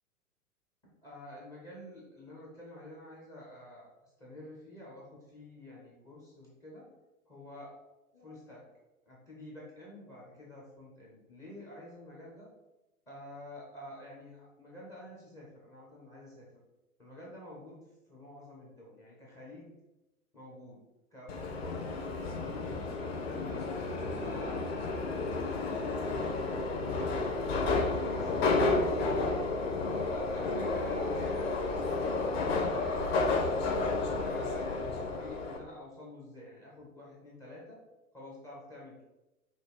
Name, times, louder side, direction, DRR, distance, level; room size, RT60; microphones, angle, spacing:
voice 1, 0.8-3.9 4.2-6.9 7.3-7.7 8.1-8.6 9.1-12.5 13.1-16.5 17.0-17.8 18.1-19.8 20.3-20.8 21.1-21.8 22.2-23.4 24.1-29.5 30.0-33.7 34.2-37.8 38.1-39.0, left 1 dB, 5° left, -5 dB, 0.4 m, -49 dB
Subway metro underground, 21.3-35.6, left 3 dB, 45° left, 0.8 m, -31 dB
5.1 x 2.3 x 4.6 m, 0.97 s
figure-of-eight pair, 105°, 44 cm